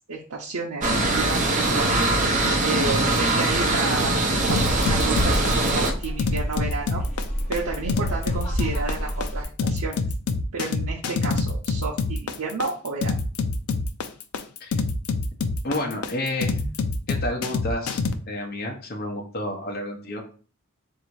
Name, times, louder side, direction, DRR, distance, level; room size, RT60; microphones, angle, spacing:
voice 1, 0.1-2.1 2.6-4.1 4.5-7.0 7.5-10.0 10.5-13.1, right 3 dB, 85° right, -3 dB, 0.7 m, -31 dB
sound 1, 0.8-5.9, right 2 dB, 35° right, 0.8 m, -22 dB
sound 2, 4.5-18.1, left 3 dB, 75° left, 0.5 m, -26 dB
sound 3, 4.5-9.4, equal, 30° left, 1.9 m, -30 dB
voice 2, 15.6-16.6 17.1-20.3, left 1 dB, 45° left, 0 dB, 0.9 m, -30 dB
4.0 x 2.8 x 4.6 m, 0.40 s
head